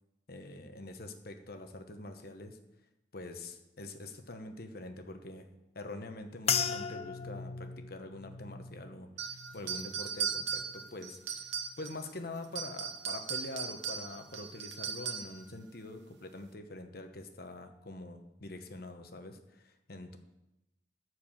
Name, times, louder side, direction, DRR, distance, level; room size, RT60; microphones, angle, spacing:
voice 1, 0.3-2.6 3.1-5.5 5.7-11.2 11.8-20.2, left 2 dB, 55° left, 6 dB, 1.1 m, -45 dB
sound 1, 6.5-11.0 11.3-12.0 12.6-12.8, left 7 dB, 35° left, 0.5 m, -38 dB
sound 2, 9.2-12.1 12.4-15.4, right 6 dB, 75° right, 1.1 m, -38 dB
14.0 x 4.8 x 7.3 m, 0.96 s
head